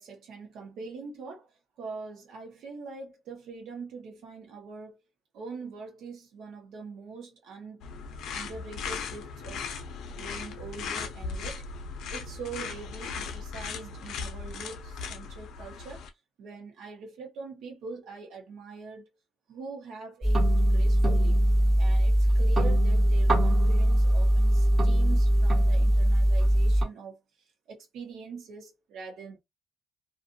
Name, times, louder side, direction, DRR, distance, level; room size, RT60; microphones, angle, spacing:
voice 1, 0.0-1.5 1.8-5.0 5.3-7.8 8.3-9.8 10.1-11.7 12.1-16.0 16.4-19.1 19.5-21.4 21.8-27.2 27.7-29.4, right 4 dB, 70° right, 0.9 m, -43 dB
sound 1, 7.8-16.1, left 5 dB, 70° left, 0.4 m, -38 dB
sound 2, 20.2-26.8, equal, 15° right, 1.2 m, -21 dB
2.4 x 2.4 x 2.6 m
cardioid pair, 175°, 0 cm